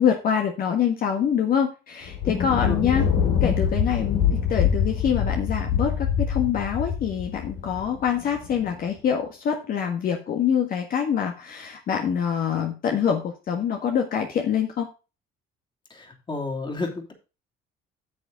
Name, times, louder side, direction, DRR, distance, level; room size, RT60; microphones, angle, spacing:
voice 1, 0.0-3.1 3.4-14.9, left 8 dB, 55° left, 3 dB, 1.7 m, -25 dB
Thunder, 2.0-8.7, left 7 dB, 85° left, 3.0 m, -25 dB
voice 2, 2.2-2.8 16.0-17.1, left 3 dB, 25° left, 4 dB, 2.9 m, -32 dB
9.6 x 7.2 x 4.0 m, 0.31 s
cardioid pair, 100°, 17 cm